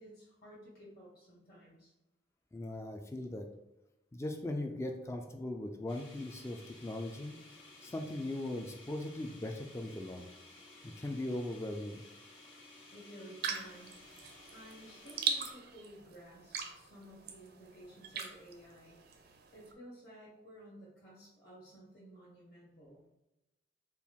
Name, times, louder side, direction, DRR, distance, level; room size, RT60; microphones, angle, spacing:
voice 1, 0.0-1.9 12.9-14.1 14.5-19.0 19.5-23.0, equal, 55° left, -6 dB, 1.5 m, -54 dB
voice 2, 2.5-3.5 4.1-7.4 7.8-10.3 10.8-12.0, left 1 dB, 15° left, 4 dB, 0.3 m, -39 dB
sound 1, 5.9-15.5, left 2 dB, 90° left, 1.4 m, -56 dB
sound 2, 13.4-19.7, right 5 dB, 55° right, 0.5 m, -41 dB
4.4 x 2.3 x 3.5 m, 0.95 s
head